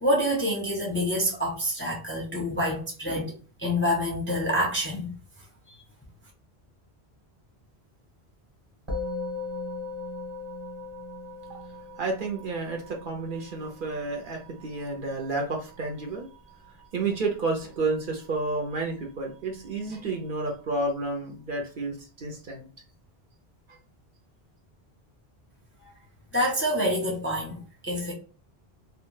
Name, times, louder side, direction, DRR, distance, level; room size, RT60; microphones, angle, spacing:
voice 1, 0.0-5.1 5.7-5.8 26.3-28.1, equal, 15° left, 0.5 m, -27 dB
Musical instrument, 8.9-18.4, left 3 dB, 30° right, 1.0 m, -39 dB
voice 2, 12.0-16.3 16.9-22.7 23.7-23.8, right 3 dB, 60° right, 0.8 m, -31 dB
2.2 x 2.2 x 3.1 m
omnidirectional pair, 1.1 m